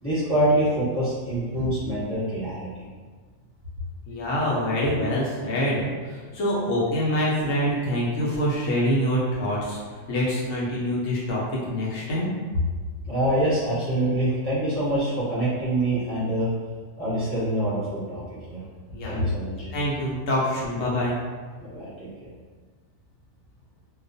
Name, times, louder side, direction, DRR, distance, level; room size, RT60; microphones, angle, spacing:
voice 1, 0.0-2.8 13.0-16.5 17.0-18.6 19.0-19.7 21.6-22.3, right 1 dB, 10° left, -11 dB, 1.0 m, -25 dB
voice 2, 4.1-9.8 10.1-11.4 11.7-12.3 18.9-19.3 19.7-21.2, equal, 80° left, -6 dB, 0.9 m, -25 dB
2.3 x 2.2 x 2.5 m, 1.5 s
omnidirectional pair, 1.4 m